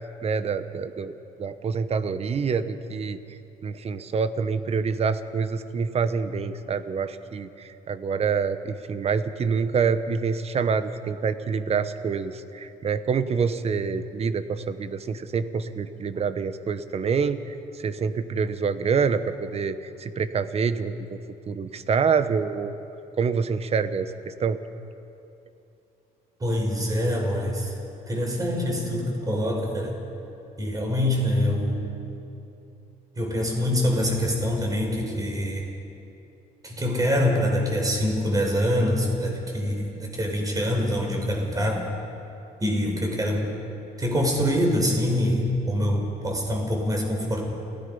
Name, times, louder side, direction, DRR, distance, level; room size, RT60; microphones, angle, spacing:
voice 1, 0.2-1.1 1.4-3.2 3.6-21.2 21.5-22.7 23.2-24.6, right 5 dB, 35° right, 12 dB, 1.1 m, -26 dB
voice 2, 26.4-27.7 28.1-30.0 30.6-31.8 33.2-35.7 36.6-41.9 42.6-43.5 44.0-47.4, equal, 20° right, 1 dB, 5.0 m, -25 dB
28.0 x 17.0 x 5.6 m, 2.8 s
cardioid pair, 110°, 17 cm